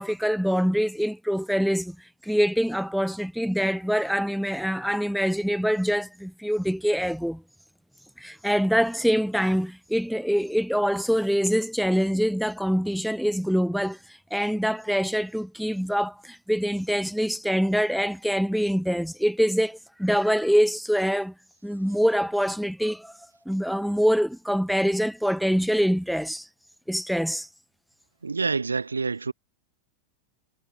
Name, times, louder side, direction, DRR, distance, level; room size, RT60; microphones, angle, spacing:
voice 1, 0.0-1.9 2.2-7.4 8.2-14.0 14.3-21.3 21.6-23.1 23.4-26.5 26.9-27.5, equal, ahead, 3.4 m, -24 dB
voice 2, 28.2-29.3, right 4 dB, 75° right, 7.7 m, -27 dB
figure-of-eight pair, 90°, 0 cm